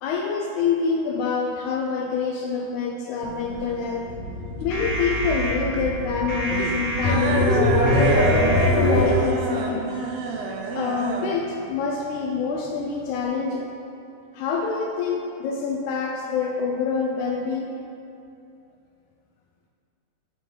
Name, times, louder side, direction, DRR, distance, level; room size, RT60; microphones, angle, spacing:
voice 1, 0.0-4.1 4.6-8.3 8.7-9.9 10.7-13.7 14.3-17.7, left 5 dB, 80° left, 0 dB, 1.9 m, -26 dB
sound 1, 3.2-13.3, right 4 dB, 80° right, 1.5 m, -30 dB
sound 2, 4.1-9.1, left 1 dB, 60° left, 2.0 m, -23 dB
9.4 x 3.7 x 4.8 m, 2.6 s
omnidirectional pair, 3.6 m